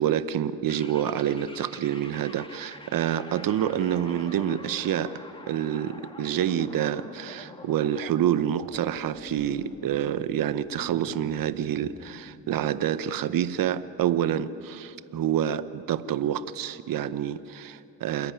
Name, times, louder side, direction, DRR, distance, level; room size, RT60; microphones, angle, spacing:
voice 1, 0.0-5.2 5.5-18.3, right 10 dB, 55° right, 14 dB, 0.9 m, -27 dB
sound 1, 0.7-12.8, left 2 dB, 15° left, 1.8 m, -46 dB
27.5 x 11.0 x 10.0 m, 2.7 s
cardioid pair, 80°, 40 cm